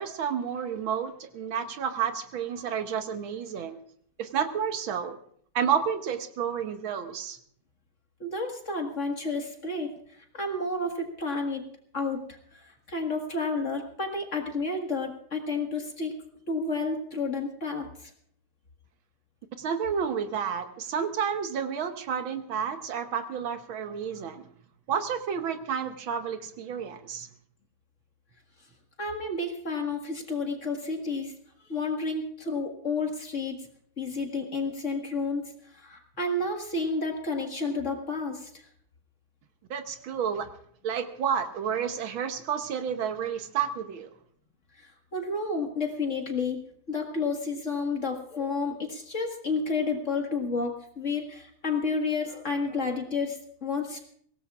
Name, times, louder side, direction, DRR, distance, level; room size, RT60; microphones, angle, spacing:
voice 1, 0.0-3.8 4.2-5.2 5.6-7.4 19.6-24.4 24.9-27.3 39.7-40.5 40.8-44.1, right 7 dB, 70° right, 8 dB, 1.7 m, -30 dB
voice 2, 8.2-9.9 10.3-11.6 11.9-12.2 12.5-16.1 16.5-18.1 29.0-31.3 31.7-33.6 34.0-38.6 44.8-54.1, left 3 dB, 35° left, 2 dB, 1.9 m, -31 dB
23.5 x 17.5 x 2.4 m, 0.62 s
omnidirectional pair, 2.4 m